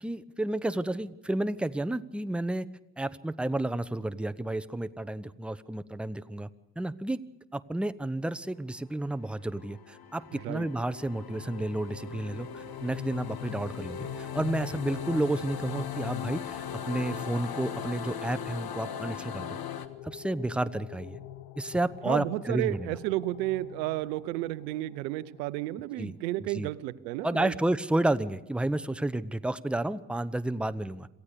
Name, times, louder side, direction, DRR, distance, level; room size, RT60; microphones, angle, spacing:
voice 1, 0.0-2.7 3.0-6.5 6.8-7.2 7.5-19.6 20.0-21.2 21.6-22.9 26.0-26.7 27.2-31.1, right 1 dB, ahead, 13 dB, 0.9 m, -31 dB
sound 1, 9.2-19.9, left 7 dB, 45° left, 1.7 m, -40 dB
voice 2, 10.3-10.7 22.1-27.5, right 17 dB, 80° right, 19 dB, 0.7 m, -32 dB
sound 2, 11.0-25.6, left 16 dB, 75° left, 1.1 m, -44 dB
27.0 x 15.0 x 6.8 m, 0.92 s
hypercardioid pair, 55°, 49 cm